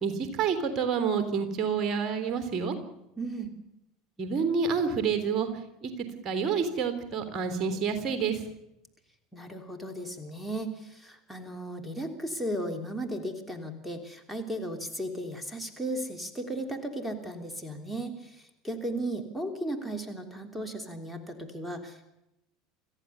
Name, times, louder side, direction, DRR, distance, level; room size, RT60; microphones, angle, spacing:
voice 1, 0.0-2.8 4.2-5.5 5.8-5.9 6.2-8.4, right 6 dB, 35° right, 9 dB, 3.4 m, -28 dB
voice 2, 3.2-3.5 9.3-22.1, right 1 dB, 5° right, 5 dB, 3.3 m, -35 dB
28.0 x 14.5 x 7.0 m, 0.87 s
figure-of-eight pair, 70°, 0 cm